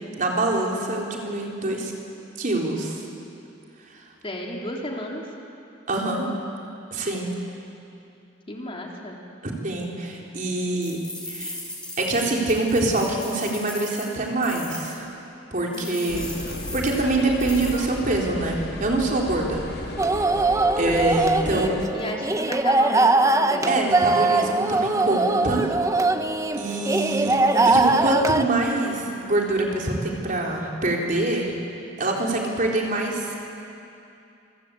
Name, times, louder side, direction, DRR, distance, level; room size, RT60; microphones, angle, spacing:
voice 1, 0.1-1.9 2.4-3.0 3.9-4.0 5.9-6.3 6.9-7.3 9.4-11.0 11.3-11.6 12.0-15.1 15.5-20.2 20.8-21.7 23.6-25.7 26.6-27.4 27.6-31.5 32.0-33.4, right 2 dB, 45° right, -1 dB, 3.9 m, -25 dB
voice 2, 4.2-5.2 8.5-9.2 15.7-16.3 21.5-24.5, left 1 dB, 30° left, -1 dB, 3.3 m, -34 dB
sound 1, 10.8-14.9 15.7-17.8, left 1 dB, 5° left, 7.4 m, -38 dB
sound 2, 16.1-21.9, left 1 dB, 60° left, 2.0 m, -34 dB
sound 3, 20.0-28.4, right 2 dB, 15° right, 0.8 m, -21 dB
27.0 x 23.0 x 8.5 m, 2.7 s
head